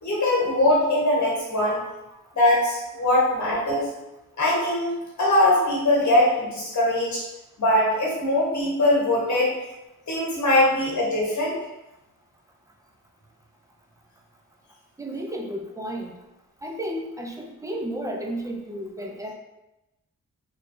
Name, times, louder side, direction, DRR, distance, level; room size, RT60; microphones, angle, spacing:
voice 1, 0.0-1.8 2.3-3.9 4.4-7.2 7.6-9.5 10.1-11.5, left 1 dB, 55° left, -5 dB, 1.3 m, -21 dB
voice 2, 1.7-2.2 15.0-16.2 16.6-19.3, right 1 dB, 10° right, 1 dB, 0.5 m, -33 dB
3.0 x 2.3 x 2.6 m, 0.95 s
cardioid pair, 60°, 34 cm